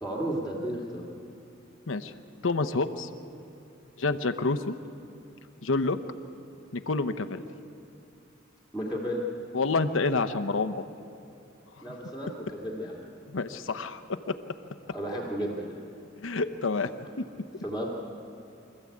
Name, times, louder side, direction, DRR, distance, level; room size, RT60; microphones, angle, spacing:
voice 1, 0.0-1.1 8.7-9.2 11.8-13.0 14.9-15.7 17.6-17.9, right 1 dB, ahead, -6 dB, 2.4 m, -33 dB
voice 2, 2.4-3.1 4.0-4.7 5.6-6.0 6.7-7.4 9.5-10.7 13.3-14.4 16.2-16.9, left 3 dB, 80° left, 9 dB, 0.8 m, -28 dB
24.5 x 14.0 x 8.6 m, 2.6 s
head